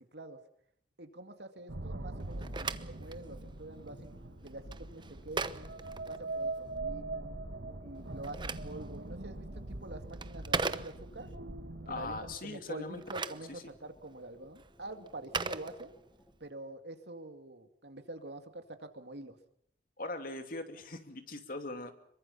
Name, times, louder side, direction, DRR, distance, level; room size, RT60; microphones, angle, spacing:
voice 1, 1.0-4.1 4.4-5.7 6.1-7.4 7.8-11.3 11.9-16.0 16.4-19.4, right 2 dB, 75° right, 7 dB, 2.4 m, -46 dB
sound 1, 1.6-16.3, equal, 10° left, 3.1 m, -61 dB
sound 2, 1.7-12.4, right 2 dB, 90° right, 1.6 m, -42 dB
Telephone, 2.2-6.7 7.9-11.4 12.8-16.4, right 4 dB, 25° right, 0.9 m, -40 dB
voice 2, 11.9-13.0 13.5-13.6 20.0-21.9, left 2 dB, 55° left, 7 dB, 2.7 m, -40 dB
26.5 x 23.0 x 5.8 m, 0.71 s
head